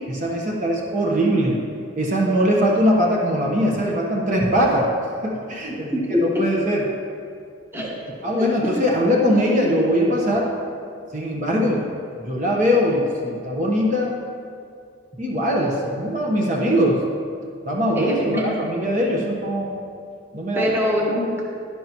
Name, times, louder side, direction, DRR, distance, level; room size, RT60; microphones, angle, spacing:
voice 1, 0.1-1.6 1.9-4.9 5.2-6.9 8.2-10.5 11.1-11.8 12.2-14.2 15.2-17.0 17.6-19.7 20.3-20.7, equal, 40° right, -2 dB, 1.2 m, -21 dB
voice 2, 5.7-6.4 7.7-7.9 8.4-8.5 8.7-8.8 9.7-10.2 18.0-18.6 20.5-21.4, left 1 dB, 10° right, -4 dB, 1.2 m, -24 dB
11.5 x 11.0 x 3.0 m, 2.3 s
head